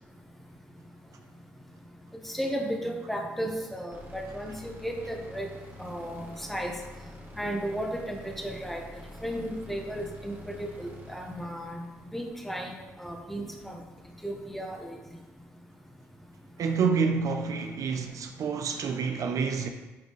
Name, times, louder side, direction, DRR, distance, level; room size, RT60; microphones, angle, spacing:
voice 1, 2.2-5.5 5.8-6.7 7.4-8.8 9.2-11.8 12.1-13.8 14.2-15.0, equal, 5° left, 1.2 m, -34 dB
sound 1, 3.9-13.1, left 1 dB, 35° right, 2.0 m, -48 dB
voice 2, 16.6-19.7, right 5 dB, 60° right, 0.6 m, -28 dB
8.4 x 4.1 x 3.1 m
hypercardioid pair, 50°, 7 cm